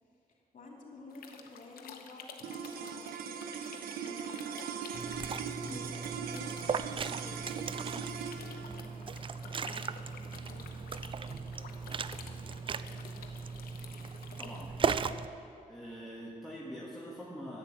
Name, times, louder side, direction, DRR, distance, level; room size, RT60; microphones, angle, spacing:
voice 1, 0.0-4.6 5.2-5.3 5.6-13.8, left 2 dB, 60° left, -2 dB, 3.0 m, -53 dB
sound 1, 1.1-14.6, left 6 dB, 80° left, 0.9 m, -52 dB
sound 2, 2.4-12.9, right 7 dB, 90° right, 0.7 m, -41 dB
Liquid, 4.9-15.3, right 5 dB, 35° right, 0.4 m, -37 dB
voice 2, 14.4-15.4 15.7-17.6, equal, ahead, -6 dB, 1.7 m, -44 dB
10.5 x 8.6 x 7.4 m, 2.7 s
cardioid pair, 70°, 15 cm